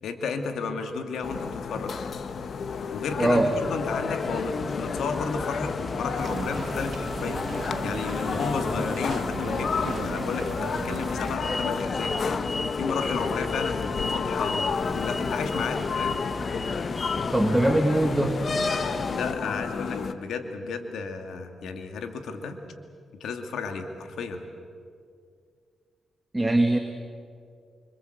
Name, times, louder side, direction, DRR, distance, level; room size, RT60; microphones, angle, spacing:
voice 1, 0.0-1.9 2.9-7.5 7.8-12.2 12.8-16.2 19.1-22.6 23.2-24.4, left 4 dB, 85° left, 6 dB, 2.4 m, -33 dB
sound 1, 1.2-20.1, left 5 dB, 65° left, 1.3 m, -32 dB
sound 2, 3.0-19.3, left 3 dB, 40° left, 1.2 m, -33 dB
voice 2, 3.2-3.5 17.3-18.4 26.3-26.8, right 1 dB, 15° right, 5 dB, 1.9 m, -21 dB
sound 3, 6.2-11.4, right 6 dB, 60° right, 1.0 m, -37 dB
25.5 x 25.0 x 8.1 m, 2.2 s
cardioid pair, 70°, 0 cm